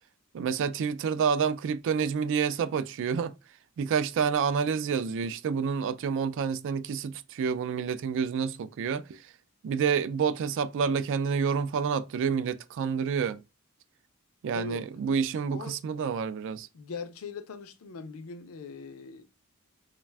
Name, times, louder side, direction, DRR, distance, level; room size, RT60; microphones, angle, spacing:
voice 1, 0.3-3.3 3.8-9.2 9.6-13.4 14.4-16.7, right 6 dB, 60° right, 0.3 m, -28 dB
voice 2, 14.5-14.9 15.5-15.8 16.7-19.2, left 5 dB, 70° left, 0.5 m, -40 dB
2.4 x 2.2 x 3.3 m
head